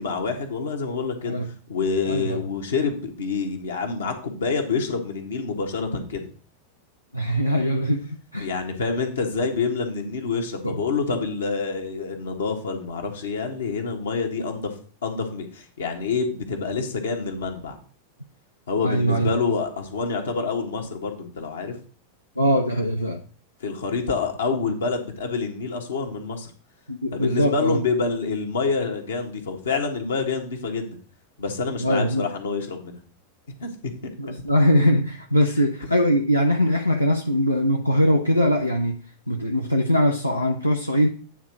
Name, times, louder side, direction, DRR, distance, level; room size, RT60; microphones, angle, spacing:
voice 1, 0.0-1.3 1.7-6.3 8.4-14.7 15.0-17.8 18.7-21.8 23.6-26.5 27.1-31.0 31.4-33.0 33.6-33.9, left 4 dB, 65° left, 3 dB, 1.4 m, -27 dB
voice 2, 2.0-2.4 7.1-8.5 10.6-10.8 18.8-19.3 22.4-23.2 26.9-27.8 31.8-32.3 34.2-39.0 39.3-41.1, equal, 85° left, 2 dB, 0.6 m, -21 dB
9.2 x 3.6 x 6.3 m, 0.41 s
figure-of-eight pair, 90°, 0 cm